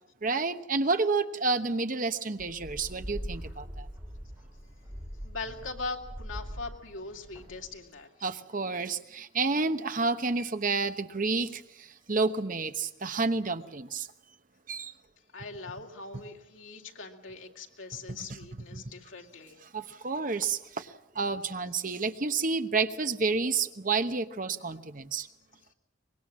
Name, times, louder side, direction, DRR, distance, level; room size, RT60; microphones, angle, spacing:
voice 1, 0.2-3.9 8.2-11.6 12.1-14.1 14.7-14.9 18.7-18.8 19.7-20.9 21.2-25.3, right 4 dB, 40° right, 9 dB, 1.0 m, -30 dB
sound 1, 2.4-7.9, equal, 15° right, 6.0 m, -42 dB
voice 2, 5.2-8.1 15.3-19.6, left 3 dB, 85° left, 2 dB, 2.7 m, -41 dB
24.5 x 21.0 x 7.4 m, 0.83 s
head